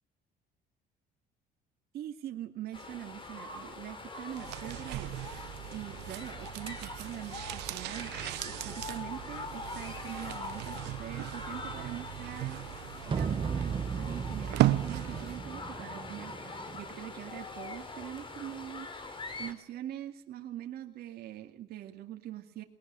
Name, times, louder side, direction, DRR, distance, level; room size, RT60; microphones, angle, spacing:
voice 1, 1.9-5.4 5.7-8.2 8.4-18.9 19.4-22.6, right 12 dB, 70° right, 3 dB, 2.3 m, -43 dB
sound 1, 2.7-19.5, left 3 dB, 30° left, 3.8 m, -43 dB
sound 2, 4.3-15.5 15.8-15.9, right 16 dB, 90° right, 1.0 m, -36 dB
sound 3, 13.1-17.1, right 6 dB, 30° right, 1.1 m, -36 dB
21.0 x 19.0 x 8.6 m, 0.71 s
cardioid pair, 110°, 17 cm